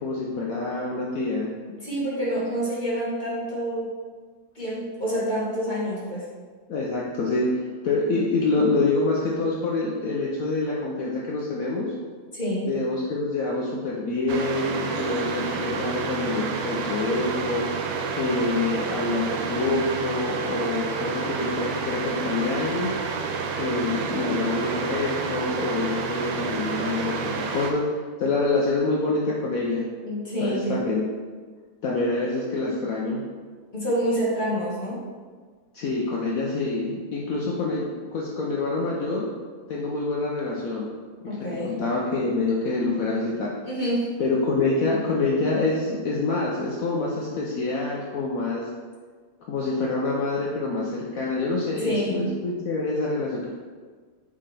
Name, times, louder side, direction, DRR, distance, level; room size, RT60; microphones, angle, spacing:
voice 1, 0.0-1.5 6.7-11.9 12.7-17.7 18.2-22.9 23.6-27.9 28.2-29.9 30.4-31.0 31.8-33.2 35.7-39.3 39.7-40.9 41.2-43.5 44.2-48.7 49.5-53.5, left 3 dB, 85° left, -4 dB, 0.7 m, -26 dB
voice 2, 1.8-3.9 4.5-6.3 12.3-12.7 30.0-30.7 33.7-35.0 41.3-41.8 43.6-44.1 51.8-52.2, equal, 25° left, -8 dB, 1.6 m, -27 dB
sound 1, 14.3-27.7, right 5 dB, 75° right, 1.4 m, -29 dB
5.7 x 5.1 x 3.3 m, 1.5 s
omnidirectional pair, 2.4 m